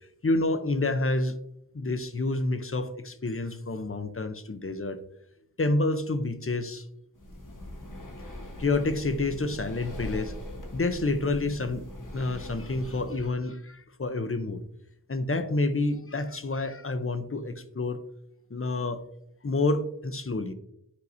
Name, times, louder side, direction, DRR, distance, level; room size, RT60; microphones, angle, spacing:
voice 1, 0.2-1.4 1.7-5.0 5.6-6.9 8.6-10.3 10.7-11.9 12.1-14.6 15.1-18.0 18.5-19.0 19.4-20.5, left 2 dB, 35° left, 10 dB, 0.6 m, -28 dB
Breathing, 7.1-13.3, left 1 dB, 55° left, 1.3 m, -41 dB
9.7 x 4.6 x 2.6 m, 0.77 s
wide cardioid pair, 50°, 38 cm